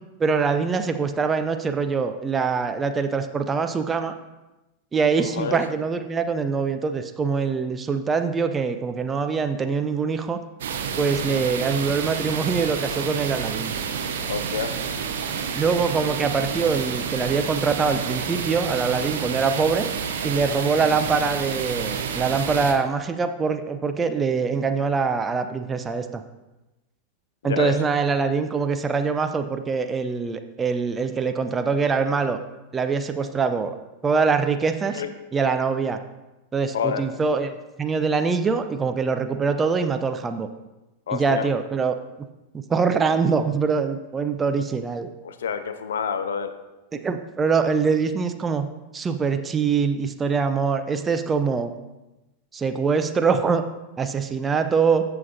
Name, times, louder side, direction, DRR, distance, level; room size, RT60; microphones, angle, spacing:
voice 1, 0.2-4.2 4.9-10.4 11.0-13.7 15.6-19.9 20.2-26.2 27.4-32.4 32.7-33.7 34.0-35.0 35.3-36.0 36.5-40.5 41.1-42.3 42.5-45.1 46.9-51.7 52.5-53.6 54.0-55.0, right 5 dB, 20° right, 8 dB, 0.6 m, -24 dB
voice 2, 5.2-5.6 14.3-14.7 27.4-27.8 34.9-35.1 36.7-37.1 41.1-41.5 45.2-46.5, left 7 dB, 65° left, 11 dB, 0.6 m, -28 dB
sound 1, 10.6-22.7, right 6 dB, 60° right, 0.8 m, -29 dB
14.5 x 5.8 x 2.8 m, 1.0 s
figure-of-eight pair, 90°, 0 cm